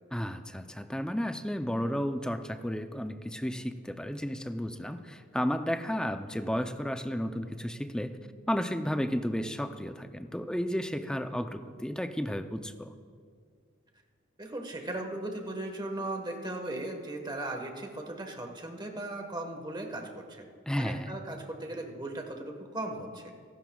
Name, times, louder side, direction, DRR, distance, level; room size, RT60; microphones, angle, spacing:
voice 1, 0.1-8.2 8.5-12.9 20.7-21.1, equal, 5° left, 8 dB, 0.5 m, -33 dB
voice 2, 14.4-20.5 20.7-23.3, right 1 dB, 20° right, 3 dB, 1.3 m, -37 dB
28.5 x 12.0 x 2.3 m, 2.1 s
head